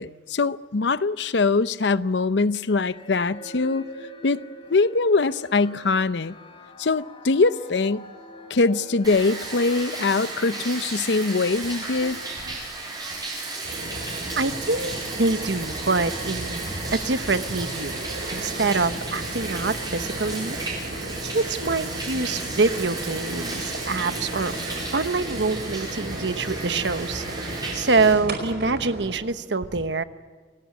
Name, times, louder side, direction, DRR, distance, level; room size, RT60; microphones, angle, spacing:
voice 1, 0.0-3.9 4.2-4.4 4.7-6.4 6.8-8.0 8.5-12.2, left 3 dB, 80° left, 0.7 m, -22 dB
sound 1, 2.6-12.1, left 1 dB, 30° left, 5.1 m, -44 dB
Bathtub (filling or washing), 9.0-28.1, right 3 dB, 25° right, 7.4 m, -34 dB
sound 2, 13.6-29.2, right 1 dB, 65° right, 5.1 m, -35 dB
voice 2, 14.4-18.0 18.3-20.6 21.2-24.6 24.9-30.0, right 3 dB, 90° right, 1.1 m, -25 dB
28.0 x 18.5 x 8.4 m
head